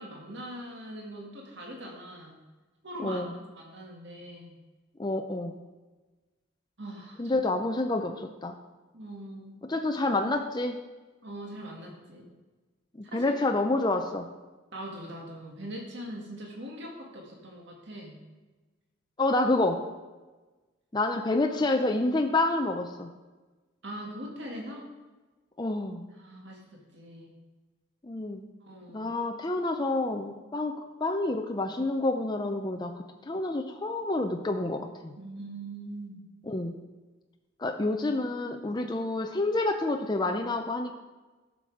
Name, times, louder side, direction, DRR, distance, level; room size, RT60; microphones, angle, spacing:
voice 1, 0.0-2.4 2.8-3.2 3.5-4.6 6.8-7.4 8.9-9.6 11.2-12.3 13.0-13.2 14.7-18.2 23.8-24.9 26.2-27.3 28.6-29.1 35.2-36.2, right 1 dB, 60° right, -1 dB, 2.0 m, -42 dB
voice 2, 3.0-3.3 5.0-5.5 7.2-8.6 9.6-10.8 13.1-14.3 19.2-19.9 20.9-23.1 25.6-26.1 28.0-28.4 28.9-35.1 36.5-36.8 37.6-40.9, left 2 dB, 20° left, 4 dB, 0.5 m, -28 dB
12.0 x 6.0 x 4.8 m, 1.2 s
head